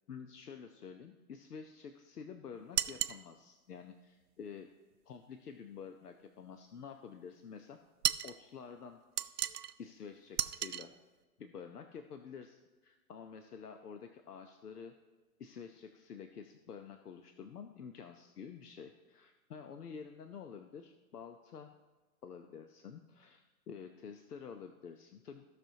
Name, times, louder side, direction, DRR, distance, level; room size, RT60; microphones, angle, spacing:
voice 1, 0.1-4.7 5.1-7.8 8.2-9.0 9.8-10.9 11.4-14.9 15.4-21.8 22.2-25.4, left 6 dB, 85° left, 7 dB, 0.8 m, -49 dB
sound 1, 2.8-3.2 8.0-8.4 9.2-9.7 10.4-10.9, right 11 dB, 90° right, 0.5 m, -34 dB
16.0 x 6.1 x 2.8 m, 1.2 s
hypercardioid pair, 125°, 45 cm